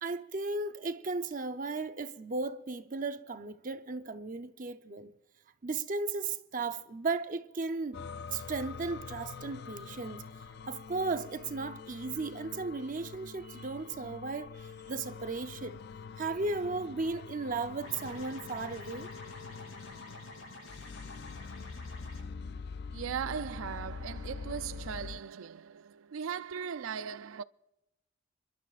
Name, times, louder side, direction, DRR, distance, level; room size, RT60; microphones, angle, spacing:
voice 1, 0.0-5.1 5.6-8.0 8.3-10.2 10.7-15.8 16.2-19.1, right 3 dB, 40° right, 0.7 m, -35 dB
sound 1, 7.9-25.2, left 5 dB, 55° left, 0.4 m, -45 dB
sound 2, 17.8-22.2, left 1 dB, 85° left, 6.1 m, -49 dB
voice 2, 22.9-27.4, right 7 dB, 75° right, 0.4 m, -38 dB
28.0 x 12.5 x 2.5 m
head